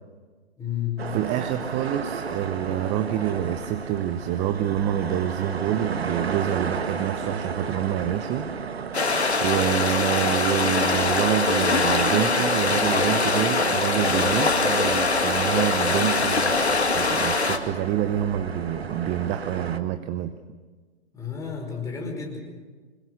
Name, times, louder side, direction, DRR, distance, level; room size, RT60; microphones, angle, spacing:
voice 1, 0.6-1.1 21.1-22.4, left 8 dB, 10° left, 0 dB, 5.1 m, -31 dB
sound 1, 1.0-19.8, right 6 dB, 65° right, 1.6 m, -34 dB
voice 2, 1.1-8.5 9.4-20.3, right 11 dB, 20° right, 10 dB, 0.8 m, -27 dB
sound 2, 8.9-17.6, left 3 dB, 75° left, 2.2 m, -22 dB
26.0 x 21.5 x 6.5 m, 1.4 s
figure-of-eight pair, 115°, 33 cm